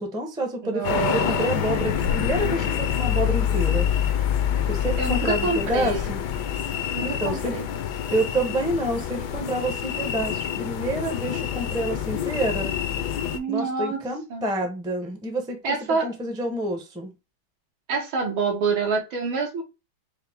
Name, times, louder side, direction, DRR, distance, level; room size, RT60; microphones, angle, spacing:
voice 1, 0.0-3.9 4.7-6.2 7.0-7.6 8.1-12.7 13.5-17.1, right 1 dB, 5° right, 0.5 m, -28 dB
voice 2, 0.6-1.5 5.0-6.1 6.9-7.7 13.3-14.0 14.3-14.4 15.6-16.1 17.9-19.6, right 4 dB, 80° right, 2.1 m, -27 dB
sound 1, 0.8-13.4, left 9 dB, 70° left, 1.1 m, -26 dB
5.6 x 2.1 x 3.5 m
omnidirectional pair, 2.2 m